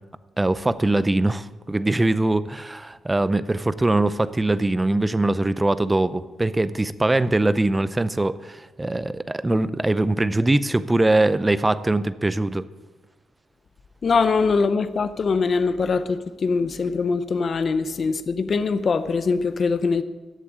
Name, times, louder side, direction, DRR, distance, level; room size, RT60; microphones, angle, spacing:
voice 1, 0.4-12.7, right 2 dB, 10° right, 0.5 m, -22 dB
voice 2, 14.0-20.0, left 4 dB, 40° left, 0.8 m, -22 dB
14.0 x 8.3 x 8.9 m
wide cardioid pair, 160°, 0 cm